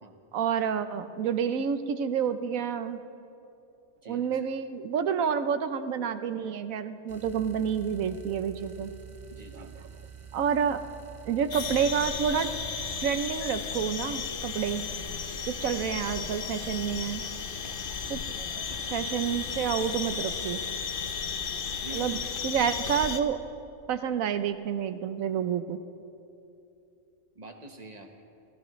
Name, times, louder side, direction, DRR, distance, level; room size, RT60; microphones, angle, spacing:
voice 1, 0.3-3.0 4.1-8.9 9.5-9.9 10.3-10.8 11.2-12.5 13.0-14.8 15.5-17.2 18.1-18.3 18.9-20.6 21.9-23.4 23.9-25.8, right 7 dB, 80° right, 10 dB, 1.1 m, -29 dB
voice 2, 4.0-4.5 9.3-9.8 18.6-18.8 21.8-22.3 27.3-28.2, right 2 dB, 30° right, 4 dB, 1.2 m, -46 dB
sound 1, 7.1-13.1, right 7 dB, 50° right, 0.4 m, -47 dB
sound 2, 11.5-23.2, left 6 dB, 50° left, 0.8 m, -34 dB
27.5 x 14.5 x 3.1 m, 2.8 s
omnidirectional pair, 1.4 m